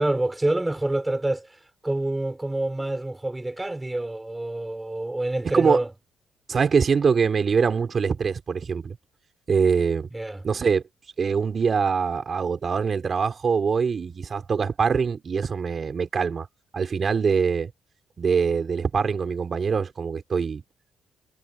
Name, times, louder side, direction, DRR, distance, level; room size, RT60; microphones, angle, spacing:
voice 1, 0.0-5.9 10.1-10.4, right 2 dB, 15° right, 3.8 m, -27 dB
voice 2, 5.4-5.8 6.5-9.0 9.5-10.1 10.4-10.8 11.2-16.5 16.7-17.7 18.2-20.6, right 5 dB, 45° right, 4.2 m, -23 dB
cardioid pair, 90°, 0 cm